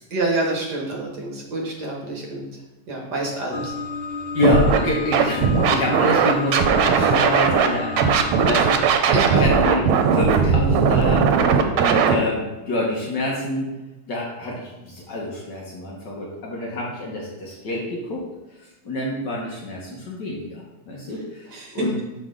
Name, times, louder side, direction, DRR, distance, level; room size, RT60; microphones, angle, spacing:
voice 1, 0.1-2.5 2.9-3.7 8.5-8.6 9.1-9.5 21.5-21.9, right 2 dB, 55° right, -1 dB, 1.7 m, -27 dB
sound 1, 3.5-8.8, left 4 dB, 90° left, 1.6 m, -31 dB
voice 2, 4.3-9.8 10.1-11.3 11.8-13.7 14.1-18.2 18.8-21.5 21.7-22.0, left 1 dB, 60° left, -3 dB, 1.6 m, -26 dB
Scratching (performance technique), 4.4-4.8 5.1-7.7 8.0-12.1, right 6 dB, 90° right, 1.5 m, -18 dB
6.2 x 5.4 x 3.7 m, 1.0 s
omnidirectional pair, 2.3 m